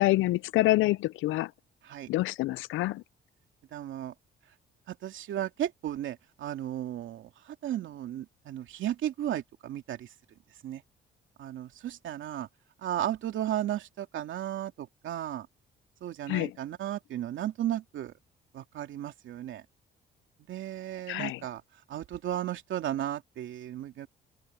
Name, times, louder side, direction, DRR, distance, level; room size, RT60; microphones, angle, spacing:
voice 1, 0.0-1.5 2.1-3.0 16.3-16.5 21.1-21.4, left 17 dB, 85° left, 0.4 m, -26 dB
voice 2, 3.7-4.1 4.9-10.1 10.6-10.8 11.4-12.5 12.8-15.5 16.0-18.1 18.5-19.6 20.5-21.6 21.9-24.1, right 12 dB, 75° right, 2.7 m, -34 dB
cardioid pair, 90°, 20 cm